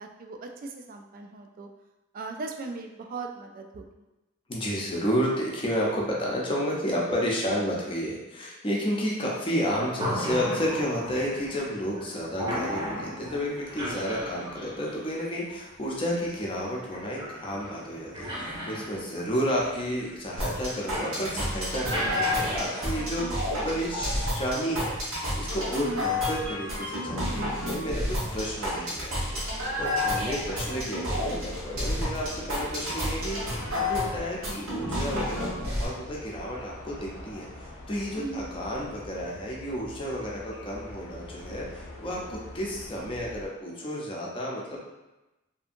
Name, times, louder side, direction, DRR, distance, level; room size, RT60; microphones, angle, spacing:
voice 1, 0.0-1.7 2.1-4.1 25.7-26.0 38.2-38.5, right 3 dB, 45° right, 3 dB, 0.3 m, -38 dB
voice 2, 4.5-25.0 25.4-44.8, equal, 25° left, -4 dB, 0.6 m, -31 dB
sound 1, 9.7-24.3, equal, 20° right, 0.7 m, -37 dB
sound 2, 20.4-35.8, left 1 dB, 85° right, 1.1 m, -30 dB
sound 3, 28.1-43.5, left 1 dB, 80° left, 0.5 m, -44 dB
2.7 x 2.6 x 2.5 m, 1.0 s
head